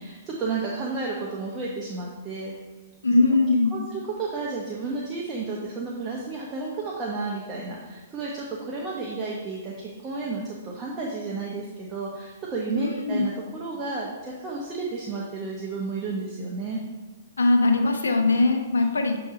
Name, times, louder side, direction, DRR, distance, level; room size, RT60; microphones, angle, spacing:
voice 1, 0.0-2.5 3.3-3.4 3.7-16.8, right 3 dB, 25° right, -3 dB, 0.9 m, -32 dB
voice 2, 3.0-3.8 12.7-13.2 17.4-19.2, left 2 dB, 85° left, 4 dB, 0.7 m, -21 dB
7.1 x 3.0 x 5.0 m, 1.3 s
hypercardioid pair, 120°, 0 cm